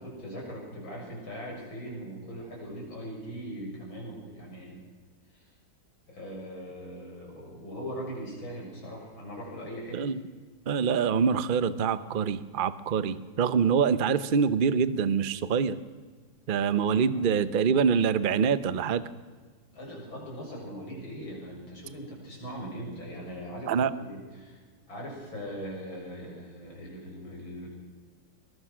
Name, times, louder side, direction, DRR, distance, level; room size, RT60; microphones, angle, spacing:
voice 1, 0.0-4.8 5.3-5.5 6.1-10.0 16.6-17.8 19.7-24.6 24.9-27.7, equal, 80° left, -2 dB, 7.8 m, -40 dB
voice 2, 10.7-15.8 16.5-19.0 23.7-23.9, right 6 dB, 65° right, 14 dB, 0.5 m, -25 dB
23.0 x 21.0 x 6.2 m, 1.5 s
omnidirectional pair, 2.1 m